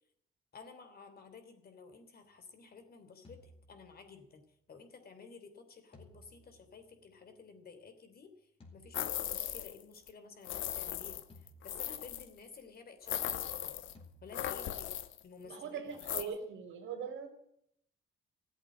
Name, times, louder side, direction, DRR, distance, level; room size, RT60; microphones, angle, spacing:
voice 1, 0.5-4.4 4.7-13.7 14.2-14.9 15.2-16.3, left 5 dB, 50° left, 7 dB, 3.1 m, -53 dB
sound 1, 3.2-4.4 5.9-7.5 8.6-9.8 11.3-12.5 13.9-15.1, left 1 dB, 30° left, 3.9 m, -60 dB
sound 2, 8.9-9.8 10.1-10.2 10.4-12.3 13.1-13.9 14.3-15.2 16.0-16.2, left 11 dB, 80° left, 1.0 m, -38 dB
voice 2, 15.4-17.3, right 6 dB, 80° right, 5 dB, 3.1 m, -41 dB
15.0 x 8.2 x 9.7 m, 0.73 s
cardioid pair, 90°, 20 cm